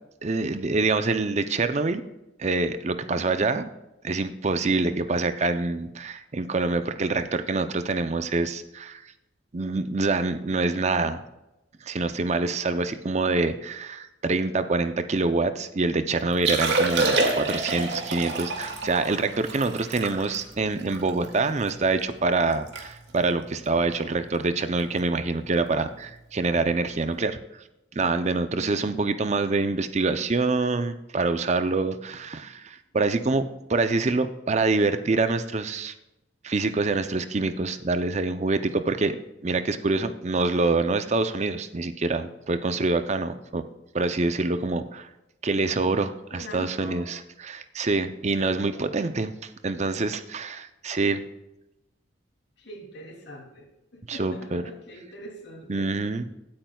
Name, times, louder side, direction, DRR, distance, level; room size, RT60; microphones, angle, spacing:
voice 1, 0.2-2.0 2.4-3.7 4.0-9.0 9.5-11.2 11.8-27.4 28.0-33.4 33.7-35.9 36.4-39.2 39.4-43.6 43.9-45.1 45.4-51.2 54.1-54.6 55.7-56.2, right 3 dB, 35° right, 10 dB, 0.6 m, -26 dB
Liquid, 16.3-21.7 22.2-22.3 22.5-22.8 23.1-23.4 24.0-24.2 25.6-25.7, right 3 dB, 70° right, 2.1 m, -27 dB
voice 2, 28.5-29.1 46.3-47.1 48.7-49.1 52.6-55.9, equal, 70° left, 0 dB, 3.0 m, -43 dB
17.0 x 8.7 x 2.3 m, 0.92 s
head